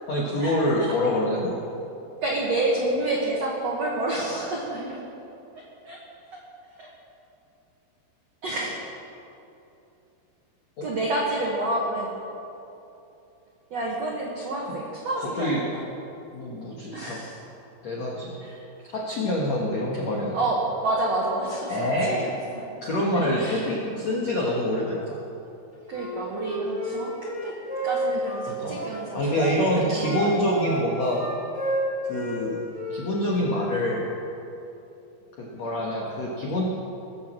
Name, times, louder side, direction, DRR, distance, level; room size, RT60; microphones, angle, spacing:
voice 1, 0.1-1.6 10.8-10.9 14.7-14.8 15.3-15.6 16.3-17.2 17.8-18.3 18.8-20.4 21.7-22.3 22.8-25.2 28.5-28.8 29.1-31.2 32.0-32.6 32.9-34.0 35.4-36.6, left 1 dB, 75° left, -3 dB, 1.5 m, -26 dB
voice 2, 2.2-5.0 5.8-6.0 6.3-6.4 6.8-6.9 8.4-8.8 10.8-12.1 13.7-15.8 16.9-17.4 18.2-18.6 20.3-22.6 23.1-23.7 25.9-27.5 27.8-30.4, right 2 dB, 85° right, -3 dB, 1.4 m, -29 dB
Wind instrument woodwind instrument, 25.8-29.5 30.0-32.4 32.7-34.0, right 1 dB, ahead, 3.2 m, -32 dB
20.0 x 7.5 x 7.4 m, 2.9 s
omnidirectional pair, 5.4 m